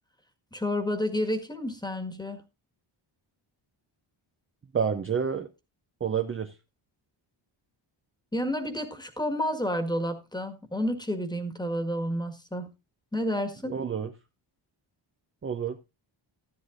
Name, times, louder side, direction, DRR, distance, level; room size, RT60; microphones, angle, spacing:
voice 1, 0.5-2.4 8.3-12.7 13.1-13.8, equal, 10° left, 6 dB, 1.6 m, -30 dB
voice 2, 4.7-5.5 6.0-6.5 13.6-14.1 15.4-15.8, right 7 dB, 25° right, 7 dB, 0.6 m, -29 dB
13.0 x 10.5 x 2.5 m, 0.25 s
cardioid pair, 105°, 49 cm